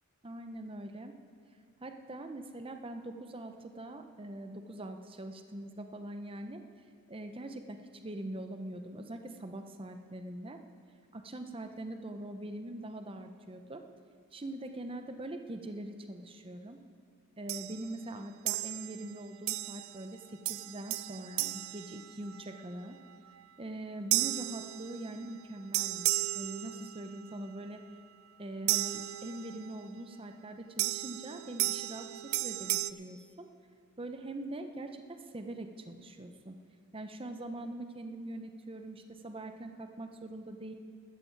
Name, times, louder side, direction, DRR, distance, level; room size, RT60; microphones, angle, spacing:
voice 1, 0.2-1.1 1.8-6.6 7.1-10.6 11.1-13.8 14.3-16.8 17.4-23.0 23.6-27.8 28.4-33.5 34.0-36.5 36.9-40.7, right 1 dB, 25° right, 6 dB, 0.7 m, -43 dB
sound 1, 17.5-17.9 18.5-19.0 19.5-20.0 20.4-22.6 24.1-25.3 25.7-27.2 28.7-29.7 30.8-32.9, right 17 dB, 65° right, 0.4 m, -34 dB
14.5 x 13.0 x 4.7 m, 2.2 s
head